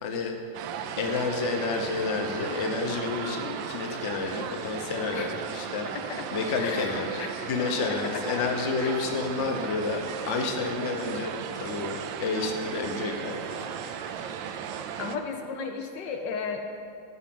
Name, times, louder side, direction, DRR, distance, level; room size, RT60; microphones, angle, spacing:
voice 1, 0.0-0.3 1.0-5.9 6.3-7.2 7.4-11.3 11.6-13.7 14.0-14.4, left 4 dB, 45° left, 3 dB, 1.1 m, -30 dB
sound 1, 0.5-15.2, right 8 dB, 85° right, 1.3 m, -36 dB
voice 2, 5.9-8.5 8.8-9.1 15.0-16.6, left 5 dB, 75° left, 4 dB, 1.4 m, -35 dB
14.5 x 4.8 x 7.6 m, 2.4 s
omnidirectional pair, 2.0 m